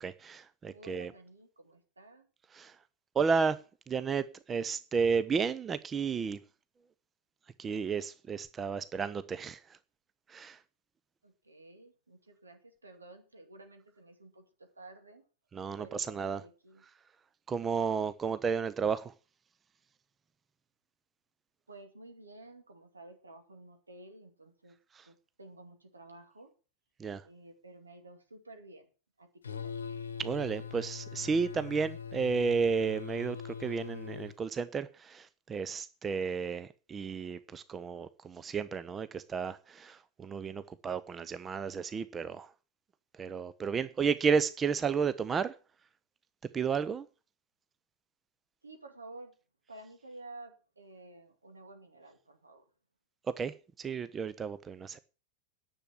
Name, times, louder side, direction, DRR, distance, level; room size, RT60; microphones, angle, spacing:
voice 1, 0.0-1.1 2.5-2.7 3.1-3.6 3.9-6.4 7.6-9.6 10.3-10.6 15.5-16.4 17.5-19.1 24.9-25.0 27.0-27.2 30.2-42.5 43.2-45.5 46.5-47.1 53.4-55.0, right 5 dB, 20° right, 0.6 m, -32 dB
voice 2, 0.7-2.3 11.2-15.2 15.8-16.8 21.7-24.8 25.0-26.5 27.2-28.9 29.2-29.7 48.6-49.3 49.7-52.6, right 2 dB, 75° right, 2.4 m, -52 dB
sound 1, 29.4-34.4, left 6 dB, 70° left, 1.0 m, -41 dB
10.5 x 7.1 x 8.4 m
figure-of-eight pair, 90°, 0 cm